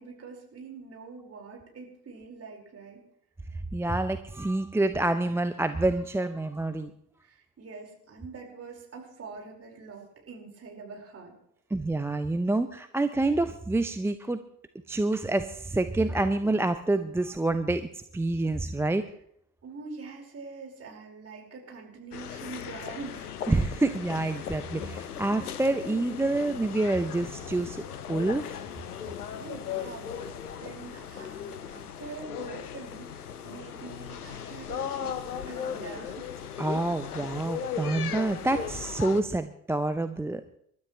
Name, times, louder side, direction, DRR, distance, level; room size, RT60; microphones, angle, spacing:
voice 1, 0.0-3.0 7.2-11.3 19.6-23.3 29.3-36.3 37.0-37.3, right 4 dB, 30° right, 0 dB, 5.0 m, -44 dB
voice 2, 3.7-6.9 11.7-14.4 14.9-17.9 18.1-19.0 23.5-27.8 28.1-28.6 36.6-40.4, right 2 dB, 5° right, 10 dB, 0.6 m, -27 dB
sound 1, 22.1-39.2, left 8 dB, 80° left, 0.9 m, -37 dB
28.0 x 13.0 x 3.2 m, 0.71 s
figure-of-eight pair, 60°, 45 cm